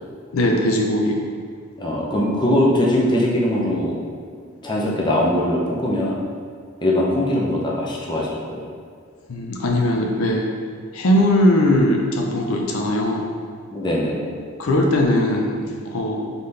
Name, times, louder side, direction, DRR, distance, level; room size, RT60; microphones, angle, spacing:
voice 1, 0.3-1.2 9.3-10.5 10.9-13.3 14.6-16.5, left 1 dB, 80° left, 1 dB, 0.5 m, -20 dB
voice 2, 1.8-4.0 4.6-6.2 6.8-8.6 13.7-14.3, left 1 dB, 20° left, -4 dB, 0.6 m, -21 dB
4.0 x 3.8 x 3.3 m, 2.1 s
head